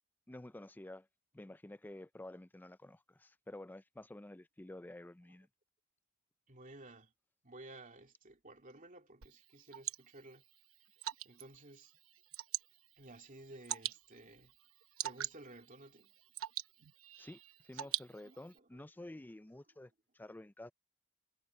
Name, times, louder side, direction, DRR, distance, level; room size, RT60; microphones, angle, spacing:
voice 1, 0.3-1.1 1.3-5.5 17.2-20.7, left 1 dB, 10° left, 0.4 m, -51 dB
voice 2, 6.5-7.1 7.4-10.4 11.2-11.9 13.0-14.5 15.0-16.2 17.7-17.9 18.2-18.8, right 2 dB, 40° right, 2.8 m, -55 dB
Water / Drip, 9.2-18.6, right 13 dB, 90° right, 0.9 m, -45 dB
head